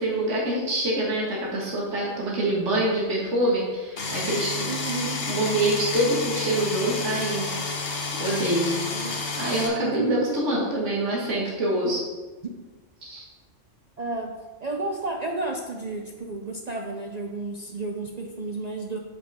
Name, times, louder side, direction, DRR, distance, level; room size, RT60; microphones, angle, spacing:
voice 1, 0.0-4.7 5.3-7.5 8.1-12.0 13.0-13.2, right 1 dB, 75° right, -4 dB, 2.0 m, -26 dB
sound 1, 4.0-9.7, left 3 dB, 70° left, 1.5 m, -30 dB
voice 2, 4.6-5.2 8.9-9.5 9.8-10.4 12.4-12.5 14.0-19.0, right 3 dB, 45° right, 2 dB, 0.5 m, -32 dB
5.5 x 5.4 x 5.4 m, 1.3 s
omnidirectional pair, 1.3 m